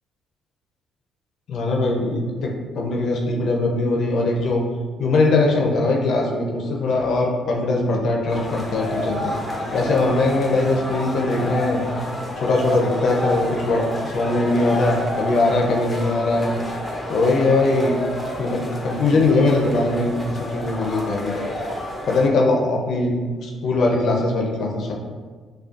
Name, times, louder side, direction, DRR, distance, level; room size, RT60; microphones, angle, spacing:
voice 1, 1.5-4.6 5.0-9.4 9.7-11.9 12.4-16.6 17.1-18.1 18.4-21.5 22.1-23.2 23.4-24.9, left 2 dB, 60° left, 0 dB, 0.6 m, -21 dB
sound 1, 8.3-22.3, left 1 dB, 15° left, 0.6 m, -29 dB
5.0 x 2.3 x 2.4 m, 1.4 s
cardioid pair, 100°, 0 cm